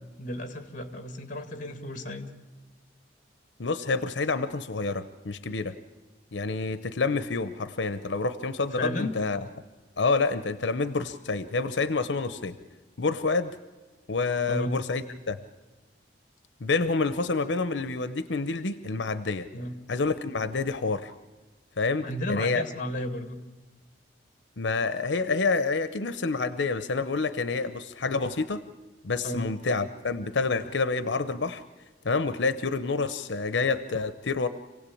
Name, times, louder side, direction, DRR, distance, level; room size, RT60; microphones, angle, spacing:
voice 1, 0.2-2.3 8.8-9.2 14.5-14.8 19.5-19.7 22.0-23.4 29.2-29.5, left 1 dB, 45° left, 8 dB, 2.0 m, -33 dB
voice 2, 3.6-5.8 6.3-9.4 10.0-12.6 13.0-13.6 14.1-15.4 16.6-19.5 19.9-21.1 21.8-22.6 24.6-28.6 29.0-31.6 32.0-34.5, left 4 dB, 90° left, 12 dB, 0.8 m, -28 dB
27.0 x 17.0 x 8.6 m, 1.3 s
head